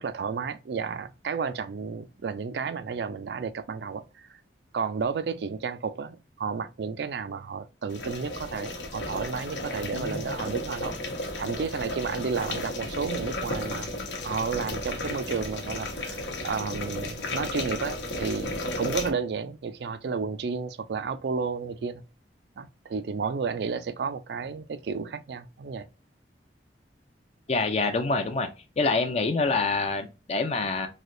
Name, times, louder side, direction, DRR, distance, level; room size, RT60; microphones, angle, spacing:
voice 1, 0.0-4.4 4.7-11.0 11.4-13.9 14.2-22.0 22.6-25.9, right 5 dB, 65° right, 0.4 m, -32 dB
sound 1, 7.9-19.1, left 1 dB, 90° left, 0.9 m, -34 dB
voice 2, 27.5-28.5 28.8-30.9, left 3 dB, 35° left, 0.4 m, -26 dB
3.2 x 2.8 x 2.5 m
head